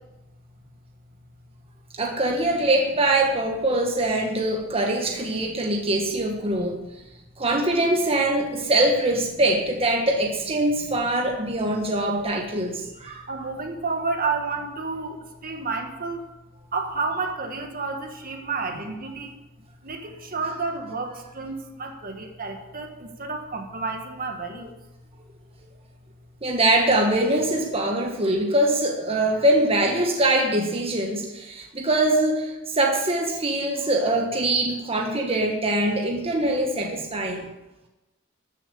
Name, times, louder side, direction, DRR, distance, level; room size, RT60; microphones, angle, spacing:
voice 1, 1.9-6.8 7.4-13.2 26.4-37.5, right 1 dB, 30° right, 1 dB, 1.5 m, -23 dB
voice 2, 13.3-15.1 15.4-16.2 16.7-19.3 19.8-21.5 21.8-22.9 23.2-24.7, right 4 dB, 45° right, 4 dB, 1.6 m, -30 dB
13.5 x 7.5 x 6.9 m, 1.0 s
head